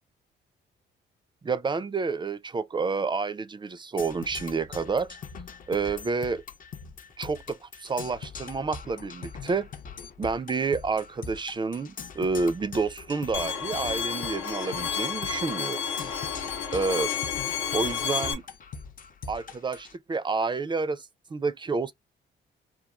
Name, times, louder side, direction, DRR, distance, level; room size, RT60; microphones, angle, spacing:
voice 1, 1.4-5.2 5.7-6.4 7.2-9.7 10.2-15.8 16.7-17.1 17.7-18.4 19.3-21.9, right 4 dB, 25° right, 0.3 m, -29 dB
Percussion, 4.0-20.0, left 5 dB, 45° left, 0.5 m, -42 dB
Bowed string instrument, 13.3-18.3, left 7 dB, 85° left, 0.9 m, -31 dB
3.0 x 2.3 x 2.2 m
cardioid pair, 90°, 20 cm